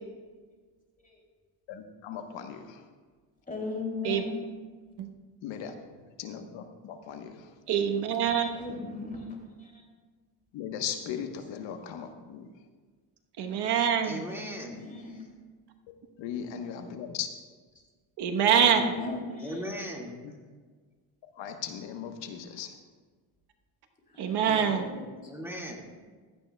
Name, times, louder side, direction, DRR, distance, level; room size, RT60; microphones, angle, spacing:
voice 1, 1.7-2.6 5.4-5.7 6.2-7.3 10.5-12.4 16.2-17.3 21.4-22.7 24.5-24.7, left 8 dB, 80° left, 6 dB, 1.2 m, -37 dB
voice 2, 3.5-4.4 8.2-9.3 9.6-9.8 11.4-11.5 14.2-15.2 18.4-19.7 24.1-24.8 25.2-25.3, left 3 dB, 20° left, -1 dB, 2.7 m, -38 dB
voice 3, 7.7-8.5 13.4-14.2 18.2-18.8 24.2-24.8, right 8 dB, 60° right, 4 dB, 1.1 m, -25 dB
voice 4, 14.0-14.8 19.4-20.2 25.3-25.9, equal, 5° right, -1 dB, 1.9 m, -38 dB
16.0 x 13.5 x 2.3 m, 1.5 s
cardioid pair, 125°, 44 cm